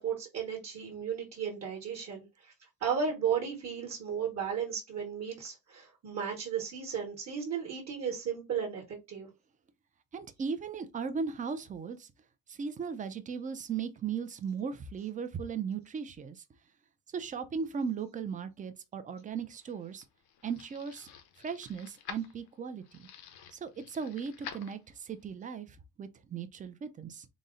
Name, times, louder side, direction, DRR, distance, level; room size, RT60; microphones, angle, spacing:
voice 1, 0.0-2.5 2.8-9.3, right 7 dB, 45° right, 1.0 m, -34 dB
voice 2, 10.1-12.1 12.5-16.4 17.1-20.0 20.4-21.1 21.4-23.1 23.5-27.3, right 6 dB, 25° right, 0.3 m, -37 dB
sound 1, 19.3-25.2, left 8 dB, 90° left, 0.8 m, -49 dB
4.0 x 2.0 x 3.6 m
cardioid pair, 175°, 36 cm